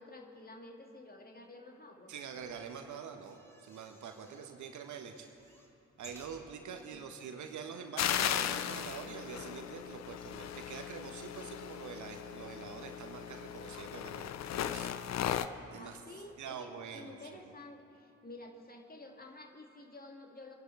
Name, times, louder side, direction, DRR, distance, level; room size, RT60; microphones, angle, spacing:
voice 1, 0.0-2.1 6.9-7.2 15.7-20.5, left 2 dB, 25° left, 2 dB, 2.2 m, -51 dB
voice 2, 2.1-5.3 6.0-14.3 14.7-14.9 15.7-16.0 16.4-17.2, right 6 dB, 50° right, 5 dB, 1.3 m, -45 dB
sound 1, 2.4-4.6 4.9-6.9 7.4-7.5 7.7-7.8, equal, 5° left, 3.4 m, -59 dB
sound 2, 8.0-15.5, left 10 dB, 45° left, 0.7 m, -37 dB
24.5 x 11.5 x 4.7 m, 2.7 s
figure-of-eight pair, 45°, 38 cm